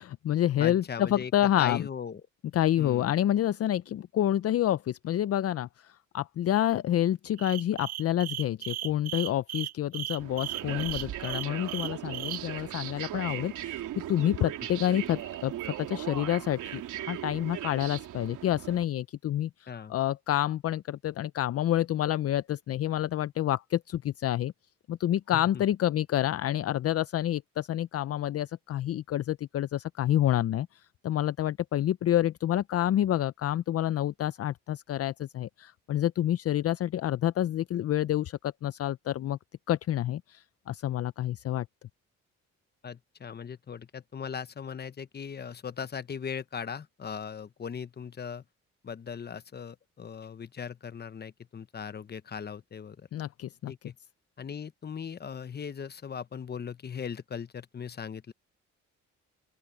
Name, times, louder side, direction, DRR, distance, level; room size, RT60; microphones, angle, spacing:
voice 1, 0.0-1.8 2.5-15.5 15.8-24.5 24.9-39.4 39.7-41.7 53.1-53.7, left 12 dB, 50° left, 0.5 m, -28 dB
voice 2, 0.6-1.3 1.6-2.2 2.8-3.1 19.7-20.0 25.3-25.6 42.8-48.4 48.8-53.1 53.7-53.9 54.4-58.3, left 7 dB, 35° left, 1.0 m, -39 dB
sound 1, 7.4-12.4, right 13 dB, 60° right, 0.5 m, -36 dB
sound 2, 10.2-18.9, right 12 dB, 80° right, 3.2 m, -38 dB
open air
cardioid pair, 90°, 30 cm